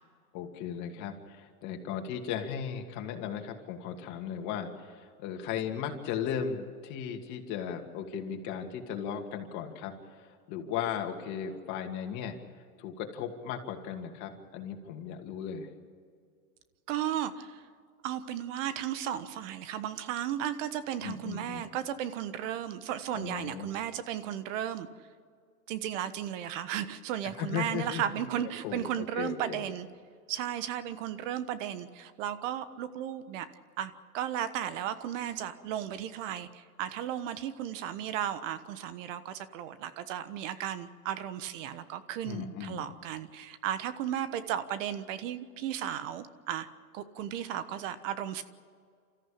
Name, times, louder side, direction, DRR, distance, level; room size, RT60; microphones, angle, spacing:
voice 1, 0.3-12.4 12.8-15.7 21.0-21.7 23.1-23.9 27.4-28.0 28.6-29.6 42.2-42.9, left 8 dB, 40° left, 3 dB, 2.5 m, -36 dB
voice 2, 16.9-17.7 18.0-24.9 25.7-29.9 30.3-33.5 33.8-46.7 46.9-48.4, right 10 dB, 55° right, 12 dB, 1.3 m, -35 dB
28.0 x 14.0 x 8.7 m, 2.1 s
supercardioid pair, 135°, 45 cm